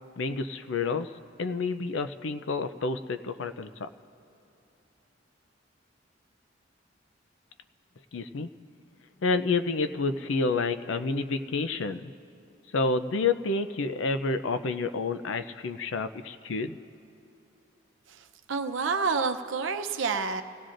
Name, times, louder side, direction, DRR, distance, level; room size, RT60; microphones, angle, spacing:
voice 1, 0.2-1.1 1.4-3.9 8.1-8.5 9.2-12.1 12.7-16.8, left 3 dB, 85° left, 9 dB, 0.5 m, -29 dB
voice 2, 18.1-20.4, right 5 dB, 80° right, 7 dB, 0.7 m, -29 dB
28.5 x 17.5 x 2.6 m, 3.0 s
head